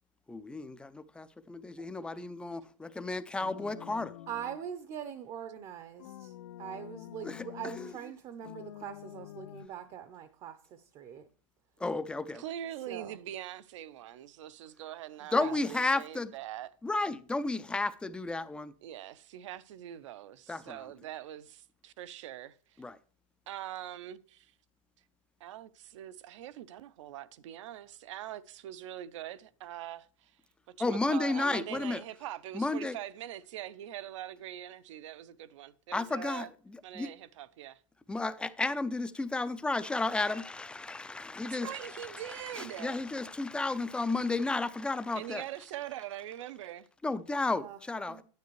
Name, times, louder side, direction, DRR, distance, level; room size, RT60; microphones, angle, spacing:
voice 1, 0.3-4.1 7.2-7.5 7.8-7.9 11.8-12.4 15.3-16.3 16.8-18.7 20.5-20.8 22.8-23.0 30.8-32.0 32.5-33.0 35.9-37.1 38.1-45.4 47.0-48.2, left 2 dB, 5° left, 0.4 m, -33 dB
sound 1, 3.4-4.7 6.0-8.0 8.4-9.7, left 13 dB, 75° left, 0.5 m, -47 dB
voice 2, 4.3-11.3 12.9-13.2 15.2-15.6 47.5-47.8 48.1-48.2, right 9 dB, 30° right, 0.7 m, -43 dB
voice 3, 12.3-16.7 18.8-22.8 23.5-24.5 25.4-30.3 30.7-36.5 36.8-37.8 41.5-43.0 45.1-46.9, right 12 dB, 65° right, 0.7 m, -43 dB
9.5 x 9.1 x 3.1 m
hypercardioid pair, 135°, 17 cm